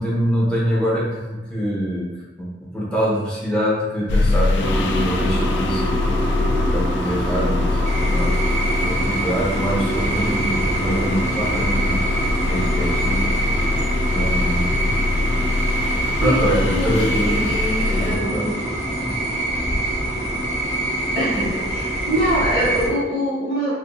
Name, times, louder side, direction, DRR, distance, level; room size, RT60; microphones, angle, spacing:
voice 1, 0.0-2.1 2.4-8.3 8.8-12.0 12.5-13.3 14.1-14.9 16.2-17.5 17.9-18.5 19.0-19.2, equal, 5° left, -6 dB, 0.8 m, -24 dB
sound 1, 4.1-18.2, left 3 dB, 75° left, 0.3 m, -23 dB
sound 2, 4.6-22.9, right 1 dB, 25° right, 1.1 m, -27 dB
sound 3, 7.8-22.9, right 2 dB, 40° right, 0.7 m, -26 dB
voice 2, 16.2-18.5 21.1-23.8, equal, 80° right, -9 dB, 1.4 m, -24 dB
3.4 x 2.7 x 2.6 m, 1.1 s
head